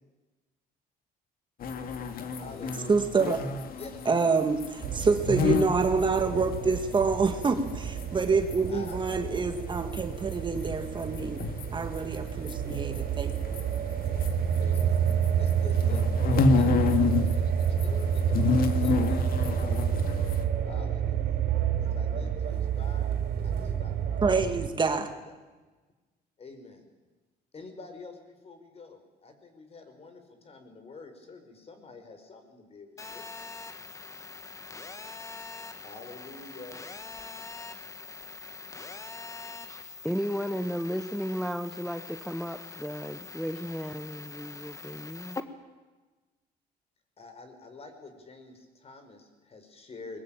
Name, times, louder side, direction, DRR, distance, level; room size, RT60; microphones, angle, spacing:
sound 1, 1.6-8.6 8.8-14.8 15.1-17.4 17.6-20.4, left 4 dB, 60° left, 2.2 m, -30 dB
voice 1, 2.3-3.1 3.7-4.0 8.7-9.0 12.2-12.5 14.0-15.0 15.4-16.1 16.5-18.5 18.8-19.9 20.6-21.3 21.8-23.1 23.4-24.2 24.8-25.3 26.4-26.8 27.5-33.3 35.8-36.8 47.2-50.2, left 3 dB, 35° left, 7 dB, 5.0 m, -47 dB
voice 2, 2.9-3.4 4.1-11.4 11.7-13.3 24.2-25.1, right 4 dB, 25° right, 7 dB, 1.9 m, -27 dB
sound 2, 4.8-24.7, right 8 dB, 70° right, 3.9 m, -29 dB
Telephone, 33.0-45.4, left 4 dB, 20° left, 1.5 m, -43 dB
voice 3, 40.0-45.4, equal, ahead, 8 dB, 0.9 m, -34 dB
21.5 x 21.0 x 8.9 m, 1.3 s
cardioid pair, 110°, 17 cm